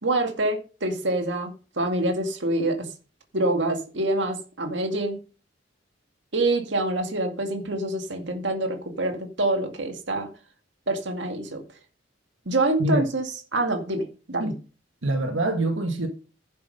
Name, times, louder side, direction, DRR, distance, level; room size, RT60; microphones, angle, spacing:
voice 1, 0.0-1.5 1.8-2.9 3.3-5.2 6.3-10.3 10.9-11.6 12.5-13.3 13.5-14.5, right 2 dB, 65° right, 2.2 m, -26 dB
voice 2, 15.0-16.1, right 1 dB, 90° right, 1.6 m, -25 dB
11.0 x 7.5 x 5.5 m
head